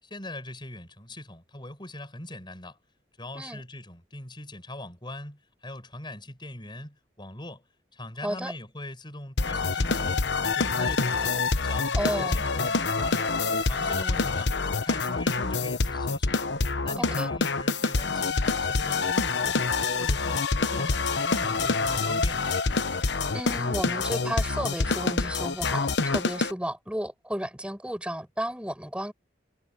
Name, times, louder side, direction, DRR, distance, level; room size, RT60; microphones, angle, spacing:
voice 1, 0.0-2.8 3.2-7.6 7.9-11.4 11.6-13.2 13.7-16.4 16.8-19.6 20.0-22.5, left 1 dB, 25° left, 7.6 m, -41 dB
voice 2, 8.2-8.5 11.9-12.4 17.0-17.3 23.3-29.1, equal, 5° right, 7.3 m, -33 dB
sound 1, 9.4-26.5, left 4 dB, 75° left, 1.1 m, -26 dB
head